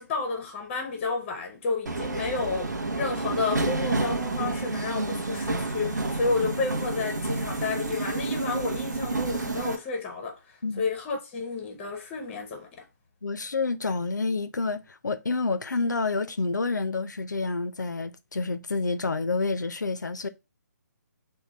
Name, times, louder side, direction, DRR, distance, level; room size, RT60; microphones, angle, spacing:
voice 1, 0.0-12.8, left 4 dB, 20° left, 0.6 m, -31 dB
Subway metro underground, 1.9-9.8, right 3 dB, 75° right, 0.7 m, -29 dB
voice 2, 13.2-20.3, left 3 dB, 75° left, 0.5 m, -28 dB
3.6 x 2.2 x 4.2 m
figure-of-eight pair, 140°, 10 cm